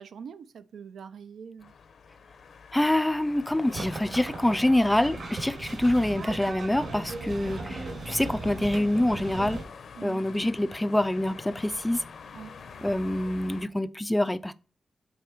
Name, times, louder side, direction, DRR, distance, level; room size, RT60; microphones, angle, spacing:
voice 1, 0.0-1.7 7.2-7.3 10.0-10.2 12.3-12.5, right 6 dB, 90° right, 0.5 m, -43 dB
sound 1, 1.6-13.7, left 6 dB, 65° left, 0.7 m, -47 dB
voice 2, 2.7-9.6 10.0-12.0 12.8-14.5, left 1 dB, 5° left, 0.3 m, -26 dB
sound 2, 3.7-9.6, right 2 dB, 70° right, 2.5 m, -37 dB
8.2 x 4.3 x 4.5 m
wide cardioid pair, 160°, 0 cm